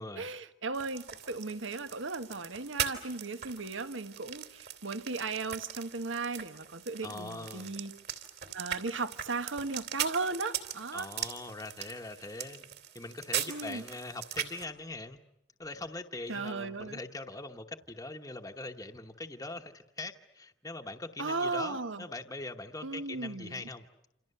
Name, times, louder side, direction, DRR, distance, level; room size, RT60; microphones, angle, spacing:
voice 1, 0.0-7.9 8.5-11.1 13.5-13.8 16.3-17.0 21.2-22.1 22.8-23.6, right 3 dB, 80° right, 1.5 m, -36 dB
sound 1, 0.7-14.6, right 9 dB, 55° right, 3.1 m, -40 dB
voice 2, 7.0-7.7 10.9-12.7 12.9-15.2 15.6-23.9, left 2 dB, 20° left, 1.1 m, -42 dB
28.5 x 27.5 x 6.8 m
head